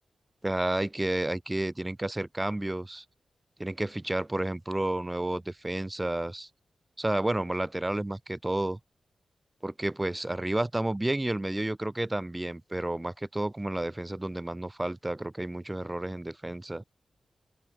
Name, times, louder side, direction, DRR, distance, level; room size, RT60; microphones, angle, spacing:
voice 1, 0.4-3.0 3.6-6.5 7.0-8.8 9.6-16.8, right 1 dB, 15° right, 2.3 m, -31 dB
open air
wide cardioid pair, 85°, 0 cm